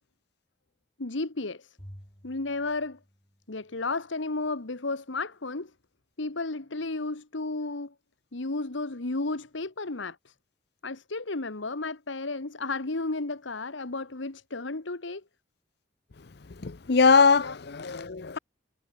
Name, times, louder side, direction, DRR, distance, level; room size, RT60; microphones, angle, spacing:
voice 1, 1.0-1.7 2.2-3.0 3.5-5.7 6.2-7.9 8.3-10.3 10.8-15.2 17.4-17.6, left 3 dB, 75° left, 1.4 m, -33 dB
Bowed string instrument, 1.8-4.2, equal, 20° left, 5.2 m, -52 dB
voice 2, 16.6-18.4, left 4 dB, 55° left, 0.7 m, -21 dB
head